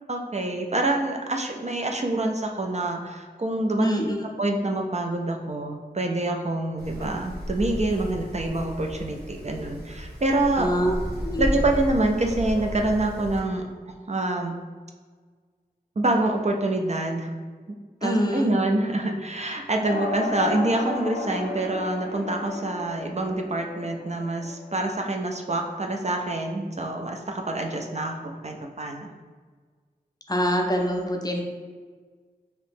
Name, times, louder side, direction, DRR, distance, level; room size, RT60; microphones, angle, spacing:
voice 1, 0.1-10.7 11.4-14.6 16.0-17.3 18.0-29.1, right 2 dB, 45° right, 2 dB, 0.4 m, -26 dB
voice 2, 3.8-4.2 10.6-11.0 11.2-11.6 18.0-18.5 30.3-31.4, equal, 25° left, 2 dB, 0.5 m, -25 dB
Wind, 6.8-13.4, equal, 80° right, 1.2 m, -33 dB
sound 1, 19.8-24.8, left 2 dB, 70° left, 0.5 m, -34 dB
2.9 x 2.7 x 3.4 m, 1.5 s
wide cardioid pair, 45°, 17 cm